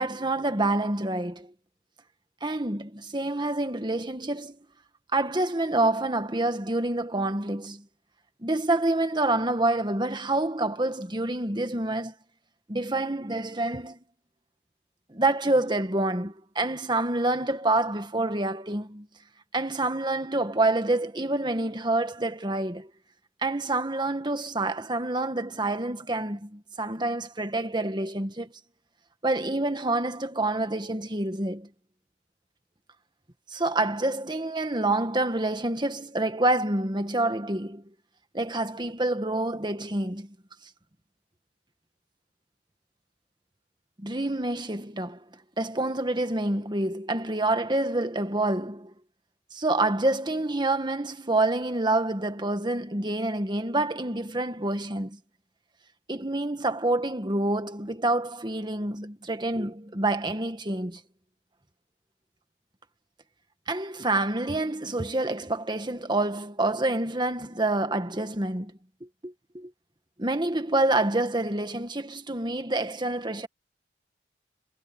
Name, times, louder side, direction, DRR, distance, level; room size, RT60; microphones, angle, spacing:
voice 1, 0.0-1.5 2.4-4.6 5.1-7.9 8.4-12.1 12.7-14.0 15.1-19.1 19.5-22.9 23.4-28.5 29.2-31.7 33.5-37.8 38.3-40.4 44.0-45.2 45.6-48.9 49.5-55.2 56.1-61.0 63.7-68.7 69.2-69.7 70.2-73.5, right 2 dB, 25° right, 1.7 m, -27 dB
head